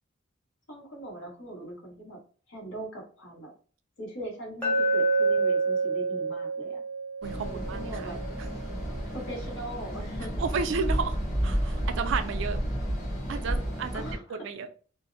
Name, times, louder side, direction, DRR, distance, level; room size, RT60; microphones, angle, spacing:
voice 1, 0.7-2.2 2.5-3.5 4.0-6.8 7.4-8.2 9.1-10.5 13.9-14.4, right 1 dB, 75° left, -2 dB, 1.2 m, -40 dB
Glass, 4.6-8.7, right 3 dB, 5° left, 0.7 m, -28 dB
sound 1, 7.2-14.2, equal, 55° left, 1.2 m, -31 dB
voice 2, 7.2-8.1 10.4-12.6 13.3-14.0 14.3-14.7, right 5 dB, 65° right, 9 dB, 0.4 m, -32 dB
2.5 x 2.0 x 2.5 m, 0.40 s
head